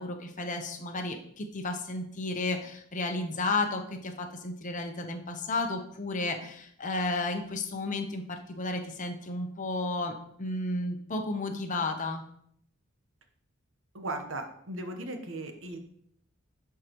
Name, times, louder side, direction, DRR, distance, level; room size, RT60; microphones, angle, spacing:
voice 1, 0.0-10.1 10.4-12.2, left 2 dB, 40° left, 4 dB, 0.8 m, -33 dB
voice 2, 13.9-15.8, right 2 dB, 70° right, 5 dB, 1.0 m, -37 dB
11.5 x 4.7 x 3.0 m, 0.69 s
head